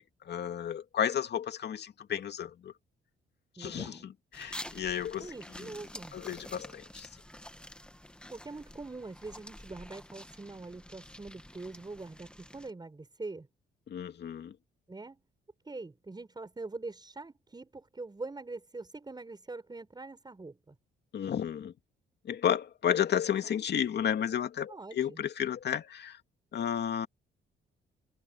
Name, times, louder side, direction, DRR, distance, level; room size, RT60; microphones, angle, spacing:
voice 1, 0.0-2.7 3.6-5.7 6.1-7.1 13.9-14.5 21.1-21.7 22.2-26.2 26.5-27.1, left 9 dB, 60° left, 2.4 m, -32 dB
voice 2, 3.6-4.0 5.2-6.1 8.3-13.5 14.9-15.2 15.7-20.8 24.7-25.2, right 3 dB, 20° right, 7.2 m, -43 dB
sound 1, 4.3-12.7, left 1 dB, 5° left, 1.8 m, -48 dB
cardioid pair, 90°, 20 cm